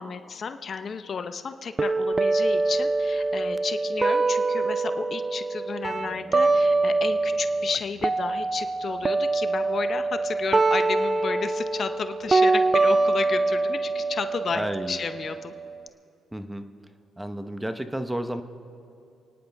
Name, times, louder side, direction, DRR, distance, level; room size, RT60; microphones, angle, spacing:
voice 1, 0.0-15.5, left 5 dB, 50° left, 9 dB, 0.7 m, -32 dB
sound 1, 1.8-15.8, right 3 dB, 25° right, 0.3 m, -24 dB
voice 2, 14.5-15.0 16.3-16.6 17.2-18.4, right 1 dB, 10° right, 8 dB, 0.9 m, -31 dB
30.0 x 10.0 x 3.5 m, 2.6 s
cardioid pair, 90°, 0 cm